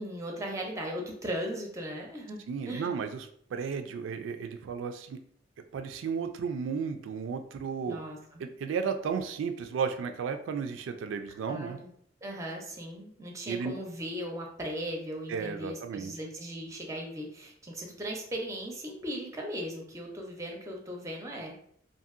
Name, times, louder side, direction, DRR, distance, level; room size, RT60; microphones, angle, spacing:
voice 1, 0.0-2.4 2.7-2.9 7.9-8.4 11.5-11.9 12.2-21.6, equal, 15° right, 0 dB, 0.5 m, -38 dB
voice 2, 2.5-3.2 3.5-5.2 5.7-8.0 8.4-11.8 13.5-13.7 15.3-16.1, right 6 dB, 90° right, 7 dB, 0.3 m, -33 dB
2.6 x 2.6 x 2.5 m, 0.66 s
head